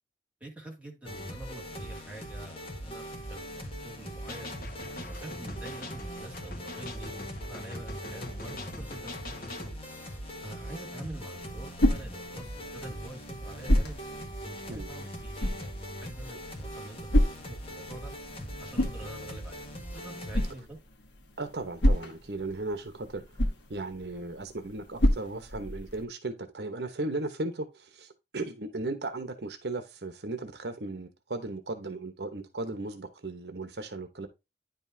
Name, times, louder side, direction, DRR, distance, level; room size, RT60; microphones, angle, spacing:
voice 1, 0.4-4.5 5.0-9.7 10.4-14.0 14.4-18.1 18.6-19.6 19.9-20.8, right 1 dB, 10° right, 2.4 m, -46 dB
sound 1, 1.0-20.5, equal, 30° left, 1.5 m, -41 dB
sound 2, 4.3-9.8, left 2 dB, 55° left, 1.5 m, -43 dB
sound 3, 11.1-26.0, equal, 90° left, 1.3 m, -31 dB
voice 2, 21.4-23.2 23.7-34.3, right 2 dB, 70° right, 1.0 m, -36 dB
10.0 x 5.4 x 2.7 m
head